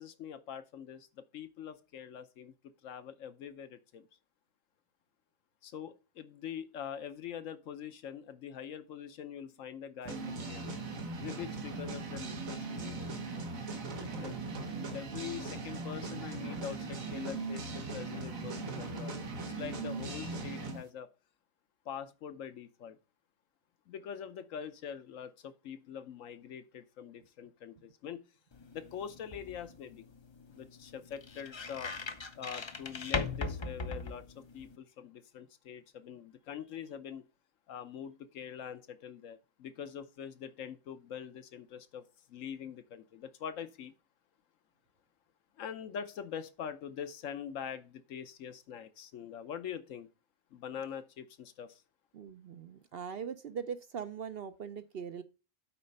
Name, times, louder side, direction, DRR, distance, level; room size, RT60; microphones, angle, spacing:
voice 1, 0.0-4.1 5.6-10.8 11.2-13.1 14.2-14.3 14.9-19.2 19.5-21.1 21.8-23.0 23.9-28.2 28.7-30.1 30.5-31.9 32.3-37.3 37.7-43.9 45.6-50.1 50.5-51.8, left 8 dB, 75° left, 1.1 m, -44 dB
sound 1, 10.1-20.8, right 3 dB, 80° right, 1.6 m, -39 dB
sound 2, 28.5-34.8, left 3 dB, 40° left, 0.4 m, -40 dB
voice 2, 52.1-55.2, right 7 dB, 55° right, 0.7 m, -41 dB
8.8 x 4.3 x 5.3 m
omnidirectional pair, 1.4 m